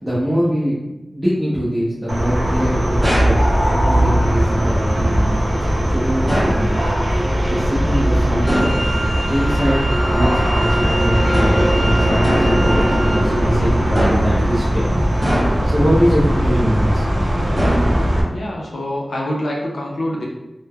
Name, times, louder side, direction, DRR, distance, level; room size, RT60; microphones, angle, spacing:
voice 1, 0.0-6.8 7.5-8.7 9.3-14.8 15.6-17.0, equal, 15° right, -10 dB, 0.7 m, -22 dB
sound 1, 2.1-18.2, equal, 70° right, 0.5 m, -18 dB
sound 2, 3.0-3.5 6.3-6.7 8.5-8.8 11.3-11.7 12.2-12.6 13.9-14.4 15.2-15.8 17.6-18.2, equal, 35° right, 1.3 m, -22 dB
Wind instrument woodwind instrument, 8.4-13.3, equal, 10° left, 0.4 m, -28 dB
voice 2, 18.3-20.2, left 1 dB, 85° left, -3 dB, 0.5 m, -25 dB
3.2 x 2.1 x 2.2 m, 1.0 s
wide cardioid pair, 75°, 0 cm